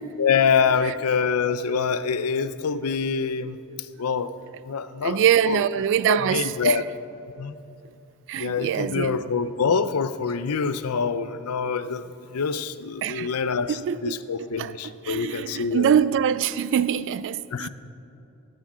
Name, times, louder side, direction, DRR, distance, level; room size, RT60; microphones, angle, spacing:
voice 1, 0.2-4.3 4.7-5.6 6.1-6.8 7.4-7.5 8.4-12.0 12.3-15.9 17.5-17.7, left 5 dB, 90° left, 0.5 m, -25 dB
voice 2, 5.0-6.8 8.3-9.3 13.0-13.3 13.7-14.1 14.6-17.7, right 9 dB, 55° right, 0.3 m, -24 dB
15.5 x 8.4 x 6.2 m
head